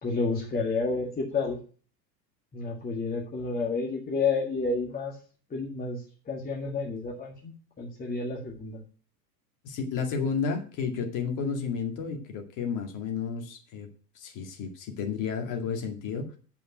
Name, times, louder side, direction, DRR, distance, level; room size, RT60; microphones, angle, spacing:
voice 1, 0.0-1.6 2.5-5.2 5.5-8.8, left 4 dB, 20° left, -3 dB, 2.1 m, -30 dB
voice 2, 9.6-13.9 14.2-16.4, left 5 dB, 40° left, 4 dB, 2.3 m, -32 dB
8.5 x 5.4 x 7.9 m, 0.40 s
figure-of-eight pair, 85°, 50 cm